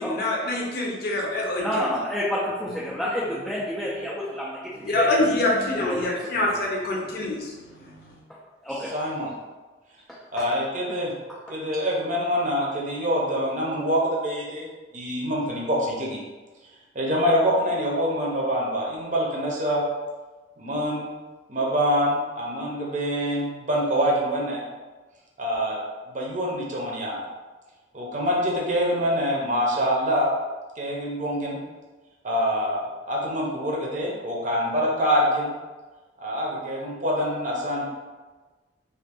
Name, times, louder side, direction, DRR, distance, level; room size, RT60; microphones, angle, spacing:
voice 1, 0.0-1.7 4.8-8.2, left 2 dB, 55° left, -2 dB, 0.6 m, -25 dB
voice 2, 1.6-5.2 5.7-6.3 8.6-8.9 10.1-10.4, equal, 5° left, -7 dB, 0.4 m, -29 dB
voice 3, 8.9-9.3 10.3-11.1 11.5-14.7 14.9-16.2 16.9-19.8 20.6-21.1 21.5-24.6 25.4-25.8 26.1-27.2 27.9-30.3 30.8-31.6 32.2-35.5 36.2-37.8, equal, 45° right, -3 dB, 0.7 m, -25 dB
2.5 x 2.5 x 3.4 m, 1.3 s
head